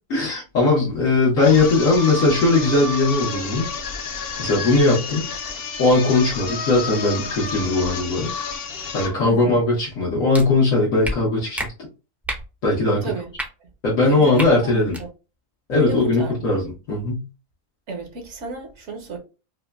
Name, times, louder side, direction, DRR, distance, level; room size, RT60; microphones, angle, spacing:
voice 1, 0.1-3.7 4.4-5.3 5.8-8.3 8.9-11.7 12.6-13.1 13.8-15.0 15.7-17.3, left 2 dB, 85° left, 1.5 m, -19 dB
sound 1, 1.4-9.2, left 4 dB, 55° left, 0.8 m, -30 dB
voice 2, 9.2-9.5 13.0-13.3 13.6-13.7 14.1-15.1 15.8-16.5 17.9-19.2, right 4 dB, 65° right, 1.2 m, -32 dB
sound 2, 10.3-10.4 11.0-11.1 11.6-11.7 12.2-12.4 13.3-13.5 14.3-14.5 14.9-15.0, equal, ahead, 0.5 m, -28 dB
5.0 x 2.2 x 2.3 m
omnidirectional pair, 1.4 m